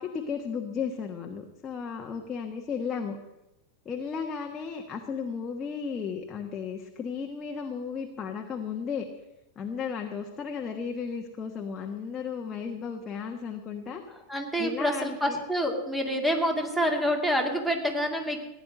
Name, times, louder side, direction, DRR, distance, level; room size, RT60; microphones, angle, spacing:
voice 1, 0.0-3.2 3.8-9.1 9.5-14.0 14.6-15.4, left 6 dB, 25° left, 2 dB, 1.3 m, -34 dB
voice 2, 14.3-18.4, equal, 5° right, 3 dB, 2.4 m, -27 dB
15.5 x 9.9 x 7.6 m, 0.95 s
figure-of-eight pair, 90°, 0 cm